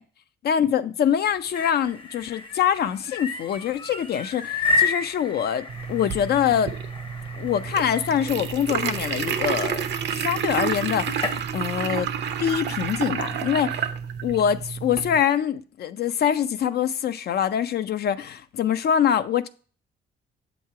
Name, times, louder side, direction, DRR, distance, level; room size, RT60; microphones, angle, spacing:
voice 1, 0.4-6.7 7.4-12.1 12.4-13.9 14.2-19.5, left 9 dB, 55° left, 0.4 m, -24 dB
sound 1, 1.3-11.4, left 4 dB, 25° left, 0.7 m, -32 dB
sound 2, 5.7-15.2, right 8 dB, 60° right, 0.6 m, -29 dB
7.2 x 3.0 x 4.7 m
cardioid pair, 90°, 20 cm